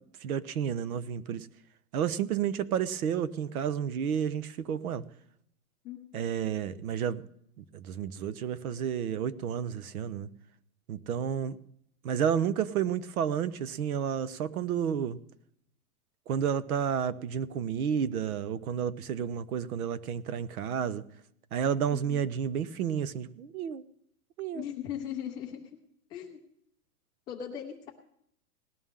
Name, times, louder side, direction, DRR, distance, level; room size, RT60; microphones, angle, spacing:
voice 1, 0.2-1.5 1.9-5.0 6.1-7.2 7.6-10.3 10.9-11.6 12.0-15.2 16.3-21.0 21.5-23.8 24.4-24.6, right 8 dB, 75° right, 15 dB, 0.9 m, -31 dB
voice 2, 24.5-25.7 26.1-26.4 27.3-27.9, left 9 dB, 10° left, -2 dB, 0.6 m, -38 dB
18.5 x 12.5 x 3.7 m, 0.72 s
supercardioid pair, 175°, 44 cm